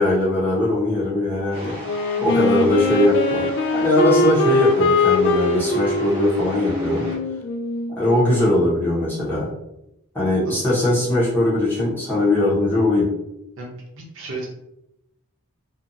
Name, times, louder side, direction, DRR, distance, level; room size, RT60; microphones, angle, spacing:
voice 1, 0.0-1.8 2.2-7.0 7.9-9.5 10.1-13.1, left 1 dB, 10° left, -8 dB, 0.9 m, -20 dB
sound 1, 1.5-7.2, equal, 25° right, 0.9 m, -37 dB
Wind instrument woodwind instrument, 1.8-8.5, left 3 dB, 55° left, 0.3 m, -22 dB
voice 2, 13.6-14.5, right 2 dB, 60° right, -2 dB, 0.7 m, -34 dB
2.5 x 2.4 x 2.7 m, 0.85 s
head